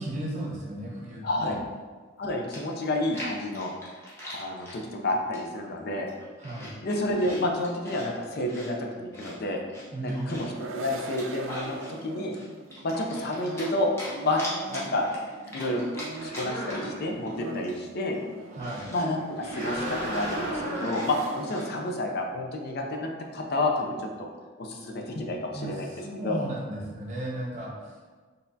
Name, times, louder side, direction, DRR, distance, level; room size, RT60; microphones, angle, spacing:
voice 1, 0.0-1.6 6.4-6.7 9.9-10.4 18.5-18.9 25.5-27.9, right 1 dB, 40° right, -2 dB, 0.8 m, -35 dB
voice 2, 1.2-1.6 2.2-3.7 4.3-6.1 6.8-9.6 10.0-12.4 12.8-13.9 14.2-14.4 14.7-15.1 15.5-15.8 16.2-18.2 18.9-24.3 24.6-25.9 26.2-26.4, left 1 dB, 50° left, 2 dB, 0.5 m, -30 dB
Chewing mastication, 2.1-2.2 2.5-4.8 5.3-5.7 6.0-8.1 8.5-10.6 11.0-11.9 12.3-13.7 14.0-17.0 17.3-17.4 17.6-21.7, left 1 dB, 15° left, 0.9 m, -41 dB
sound 1, 10.1-22.1, right 3 dB, 80° right, 0.4 m, -41 dB
sound 2, 16.2-17.3 19.4-21.1, right 1 dB, 30° left, 1.2 m, -34 dB
4.3 x 3.3 x 2.7 m, 1.4 s
head